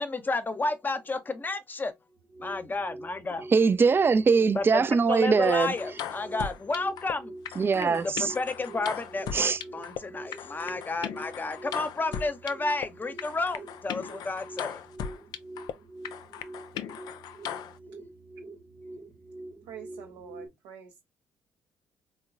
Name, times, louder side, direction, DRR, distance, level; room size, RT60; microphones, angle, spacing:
voice 1, 0.0-1.9 2.4-3.5 4.5-7.3 7.7-14.8, left 3 dB, 25° left, 0.6 m, -31 dB
sound 1, 2.1-20.5, right 2 dB, 45° right, 0.9 m, -46 dB
voice 2, 3.5-5.7 7.6-8.3 9.3-9.6, right 5 dB, 30° right, 0.4 m, -22 dB
sound 2, 5.4-7.1 7.5-10.0 10.3-12.9 13.2-15.7 16.0-17.8, left 9 dB, 60° left, 0.3 m, -38 dB
voice 3, 19.6-21.0, right 8 dB, 75° right, 0.6 m, -46 dB
3.6 x 2.0 x 2.5 m
hypercardioid pair, 50°, 8 cm